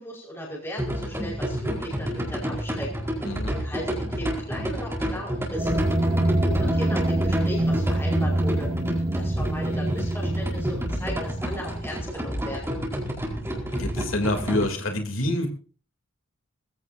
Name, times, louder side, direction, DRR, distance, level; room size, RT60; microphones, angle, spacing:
voice 1, 0.0-3.3 3.5-5.8 6.4-8.7 9.1-12.8, equal, 10° left, -3 dB, 5.1 m, -37 dB
sound 1, 0.8-14.6, equal, 15° right, 4.6 m, -30 dB
voice 2, 3.2-3.6 10.0-10.1 13.7-15.5, left 1 dB, 90° left, 4 dB, 3.2 m, -27 dB
sound 2, 5.6-12.0, right 1 dB, 30° right, 1.2 m, -26 dB
21.0 x 16.0 x 2.8 m, 0.39 s
head